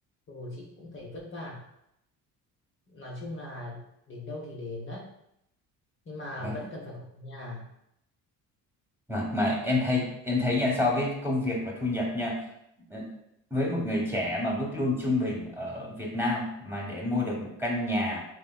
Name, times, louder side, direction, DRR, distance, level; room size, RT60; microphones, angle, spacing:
voice 1, 0.3-1.6 2.9-5.1 6.1-7.7, left 1 dB, 25° left, -4 dB, 0.7 m, -40 dB
voice 2, 9.1-12.4 12.9-13.1 13.5-18.2, left 1 dB, 5° right, -2 dB, 1.0 m, -28 dB
3.5 x 2.9 x 2.3 m, 0.80 s
hypercardioid pair, 55°, 46 cm